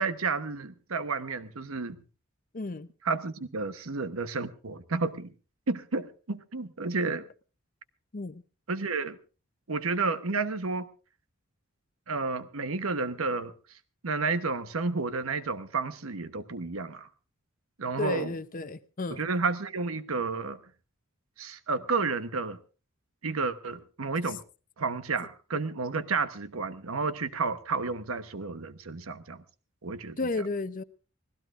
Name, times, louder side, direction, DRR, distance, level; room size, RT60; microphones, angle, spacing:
voice 1, 0.0-2.0 3.0-5.3 5.7-7.2 8.7-9.2 9.7-10.9 12.1-13.5 14.0-17.1 17.8-18.3 19.1-20.6 21.4-22.6 23.2-24.4 24.8-29.4 29.8-30.4, right 4 dB, 80° right, 1.0 m, -31 dB
voice 2, 2.5-2.9 8.1-8.4 18.0-19.3 30.2-30.8, left 3 dB, 40° left, 0.7 m, -33 dB
25.0 x 16.5 x 2.5 m
head